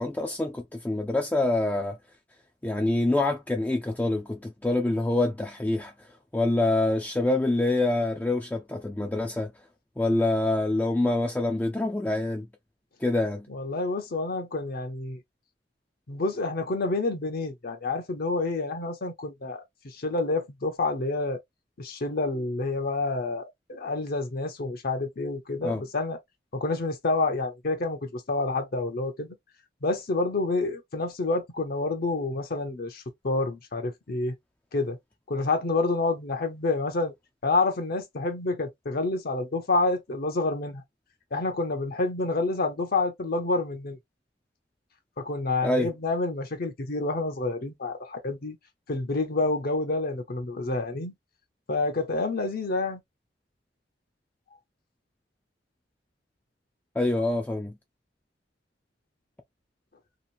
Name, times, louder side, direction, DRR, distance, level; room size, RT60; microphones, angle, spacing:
voice 1, 0.0-2.0 2.6-5.9 6.3-9.5 10.0-12.5 13.0-13.5 25.6-25.8 45.6-45.9 57.0-57.8, left 2 dB, 10° left, 0.4 m, -26 dB
voice 2, 13.5-15.2 16.1-21.4 21.8-23.4 23.7-26.2 26.5-29.3 29.8-34.3 34.7-35.0 35.3-37.1 37.4-40.8 41.3-44.0 45.2-48.6 48.9-51.1 51.7-53.0, left 3 dB, 55° left, 0.7 m, -28 dB
2.9 x 2.4 x 2.5 m
head